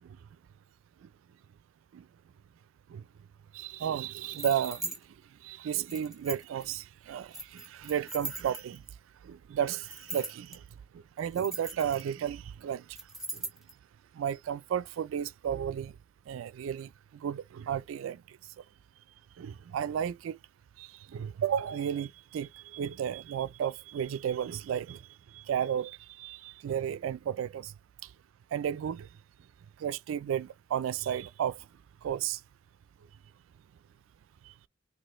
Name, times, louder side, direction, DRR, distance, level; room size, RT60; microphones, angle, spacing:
voice 1, 3.5-5.0 5.4-8.8 9.2-10.6 10.9-13.0 13.3-13.5 14.1-15.9 16.3-18.4 19.4-20.4 20.8-27.7 28.0-28.1 28.5-29.1 29.8-31.7 32.0-32.4 34.4-34.5, right 9 dB, 80° right, 0.3 m, -33 dB
sound 1, 4.3-5.0 5.7-6.6 7.3-8.9 9.7-10.6 11.2-12.3 13.0-13.7, right 1 dB, ahead, 0.8 m, -40 dB
4.2 x 2.6 x 3.0 m
head